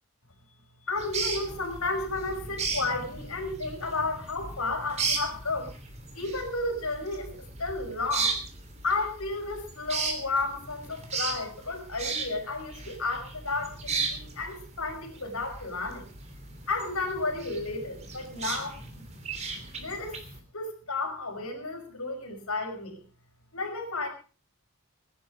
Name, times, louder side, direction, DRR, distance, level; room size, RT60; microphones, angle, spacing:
voice 1, 0.9-5.7 6.1-8.4 8.8-16.1 16.7-19.0 19.8-20.2 20.5-23.0 23.5-24.1, left 3 dB, 70° left, 3 dB, 5.7 m, -32 dB
sound 1, 1.0-20.4, right 4 dB, 30° right, 3.0 m, -36 dB
20.5 x 10.5 x 5.2 m, 0.37 s
head